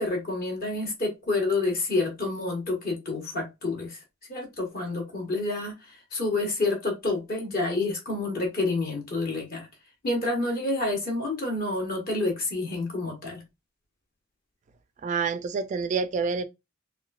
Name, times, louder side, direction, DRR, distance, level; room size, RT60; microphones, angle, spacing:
voice 1, 0.0-4.0 4.3-9.7 10.0-13.4, left 2 dB, 45° left, 1.5 m, -28 dB
voice 2, 15.0-16.4, right 5 dB, 35° right, 0.3 m, -27 dB
4.0 x 2.6 x 2.4 m
head